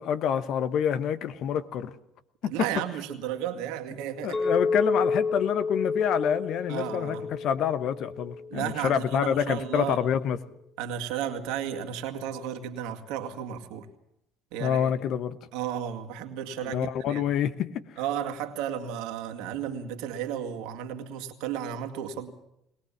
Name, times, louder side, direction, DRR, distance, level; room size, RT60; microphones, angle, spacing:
voice 1, 0.0-1.9 2.4-2.5 4.2-10.4 14.6-15.4 16.6-17.7, left 8 dB, 60° left, 12 dB, 1.3 m, -27 dB
voice 2, 2.4-4.4 6.7-7.3 8.5-10.0 10.8-13.9 14.5-14.9 15.5-17.2 18.0-22.3, right 9 dB, 75° right, 5 dB, 2.2 m, -33 dB
Chink clink, 4.3-8.6, left 4 dB, 30° left, 4.3 m, -29 dB
21.0 x 19.0 x 7.4 m, 0.79 s
hypercardioid pair, 70°, 0 cm